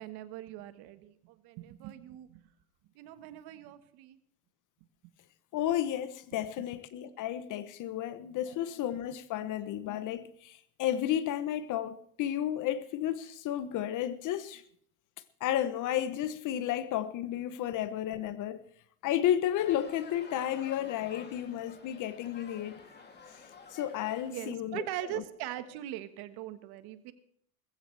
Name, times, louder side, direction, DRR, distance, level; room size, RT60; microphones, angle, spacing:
voice 1, 0.0-2.4 2.9-4.2 5.0-5.1 8.5-8.6 9.4-9.5 24.3-27.1, right 14 dB, 55° right, 1.5 m, -41 dB
voice 2, 5.5-14.6 15.4-18.6 19.0-22.8 23.7-24.9 25.1-25.2, left 11 dB, 45° left, 0.9 m, -32 dB
sound 1, 19.6-24.5, left 4 dB, 20° left, 2.8 m, -51 dB
20.0 x 15.0 x 3.3 m
supercardioid pair, 110°, 45 cm